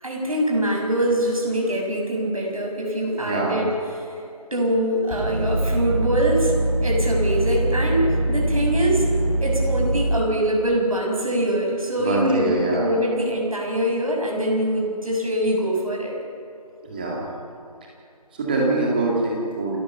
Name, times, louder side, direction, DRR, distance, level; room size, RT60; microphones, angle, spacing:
voice 1, 0.0-3.7 4.0-4.1 4.5-6.5 6.8-9.1 9.4-16.2, right 1 dB, 60° right, -1 dB, 6.5 m, -23 dB
voice 2, 3.2-3.6 12.0-12.9 16.8-17.2 18.3-19.8, right 2 dB, 15° right, -3 dB, 2.2 m, -24 dB
sound 1, 5.1-10.0, right 1 dB, 15° left, 4.0 m, -23 dB
28.0 x 14.0 x 7.0 m, 2.6 s
figure-of-eight pair, 170°, 20 cm